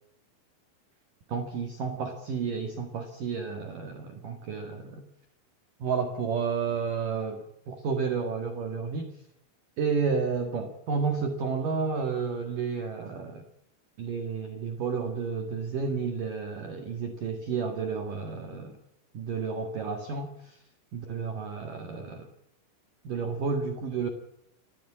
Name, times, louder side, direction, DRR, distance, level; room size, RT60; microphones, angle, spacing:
voice 1, 1.3-5.1 5.8-9.1 9.8-13.4 14.0-18.8 19.1-20.6 20.9-22.3 23.0-24.1, right 5 dB, 55° right, 5 dB, 2.7 m, -31 dB
27.5 x 15.5 x 8.8 m, 0.79 s
omnidirectional pair, 5.6 m